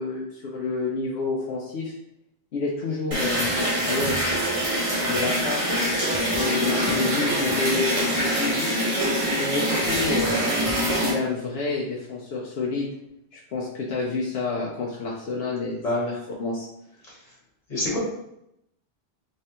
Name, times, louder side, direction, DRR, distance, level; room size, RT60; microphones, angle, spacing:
voice 1, 0.0-1.9 2.5-4.2 5.0-5.6 6.1-8.8 9.3-10.5 10.8-12.9 13.3-15.8 16.1-16.7, left 3 dB, 75° left, -3 dB, 0.8 m, -29 dB
sound 1, 3.1-11.1, equal, 35° right, 1.0 m, -24 dB
voice 2, 15.8-16.1 17.7-18.0, left 1 dB, 40° left, -5 dB, 1.4 m, -25 dB
3.3 x 3.2 x 2.9 m, 0.82 s
omnidirectional pair, 1.0 m